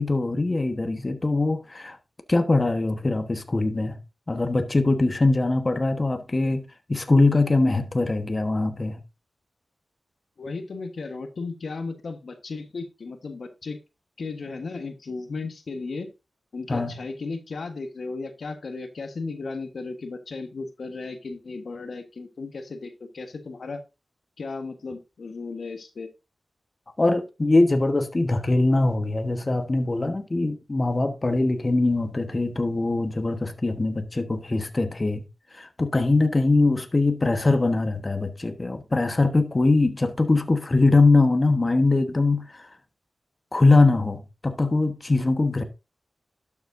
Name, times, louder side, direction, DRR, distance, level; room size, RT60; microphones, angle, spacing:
voice 1, 0.0-2.0 2.3-4.0 4.3-6.6 6.9-9.0 16.7-16.9 27.0-35.2 35.5-42.7 43.5-45.6, left 2 dB, 30° left, 1.2 m, -22 dB
voice 2, 10.4-13.8 14.2-16.1 16.5-23.8 24.4-26.1, left 3 dB, 70° left, 1.3 m, -35 dB
12.0 x 7.2 x 2.6 m
wide cardioid pair, 75°, 0 cm